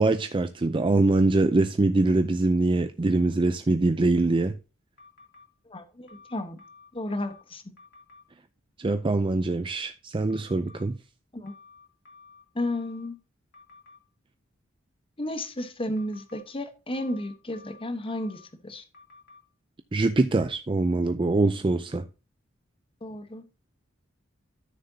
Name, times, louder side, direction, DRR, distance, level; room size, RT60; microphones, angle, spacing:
voice 1, 0.0-4.5 8.8-10.9 19.9-22.0, right 2 dB, 25° right, 0.4 m, -23 dB
sound 1, 5.0-5.5 6.1-7.4 7.8-8.2 10.3-10.8 11.5-13.1 13.5-14.0 16.0-16.4 16.9-18.5 18.9-19.4, left 4 dB, 55° left, 2.8 m, -52 dB
voice 2, 5.7-6.6 6.9-7.6 11.3-11.5 12.5-13.2 15.2-18.8 23.0-23.4, left 1 dB, 25° left, 1.1 m, -33 dB
13.0 x 6.6 x 2.8 m
head